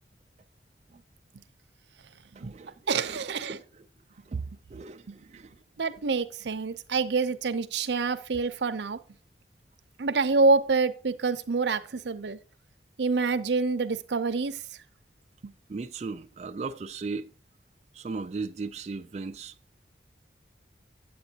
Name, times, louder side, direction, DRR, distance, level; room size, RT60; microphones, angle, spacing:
voice 1, 2.4-3.9 4.3-5.5 15.7-17.3 17.9-19.5, right 4 dB, 35° right, 0.3 m, -37 dB
voice 2, 2.9-3.6 5.1-5.2 5.8-9.0 10.0-12.4 13.0-14.6 15.4-15.5, right 4 dB, 80° right, 0.6 m, -26 dB
8.7 x 8.0 x 2.8 m
head